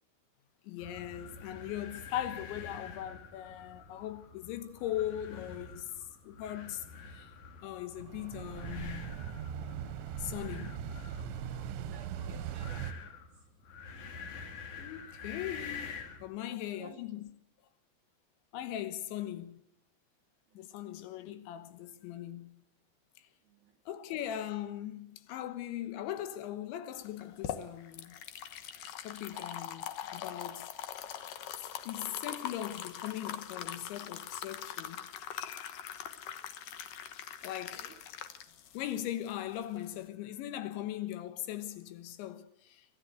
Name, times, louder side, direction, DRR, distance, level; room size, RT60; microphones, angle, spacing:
voice 1, 0.6-5.9 6.3-6.9 7.1-7.3 7.6-9.2 10.2-10.8 14.8-15.9 16.2-17.3 18.5-19.6 20.6-22.6 23.9-28.2 29.0-29.8 30.1-30.7 31.9-35.1 35.3-36.1 37.4-37.9 38.7-42.9, left 12 dB, 80° left, 3.6 m, -40 dB
sound 1, 0.8-16.3, left 5 dB, 50° left, 3.1 m, -48 dB
sound 2, 7.9-12.9, right 9 dB, 90° right, 3.3 m, -40 dB
voice 2, 11.9-13.2 13.8-13.9 16.5-17.0 20.5-20.7 23.5-23.7 29.3-29.5 37.7-38.0, right 4 dB, 60° right, 2.2 m, -56 dB
sound 3, 27.1-40.0, left 10 dB, 65° left, 2.2 m, -42 dB
24.5 x 13.5 x 8.1 m
omnidirectional pair, 5.2 m